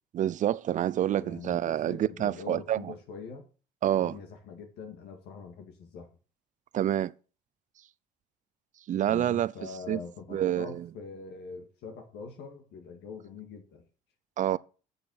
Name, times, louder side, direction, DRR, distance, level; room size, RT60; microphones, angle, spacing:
voice 1, 0.1-2.9 3.8-4.2 6.7-7.1 8.9-9.5 9.9-10.0 10.3-10.9 14.4-14.6, right 11 dB, 50° right, 0.5 m, -27 dB
voice 2, 1.1-3.5 4.0-6.1 9.1-13.8, left 5 dB, 80° left, 2.1 m, -43 dB
8.0 x 6.9 x 6.4 m
cardioid pair, 110°, 17 cm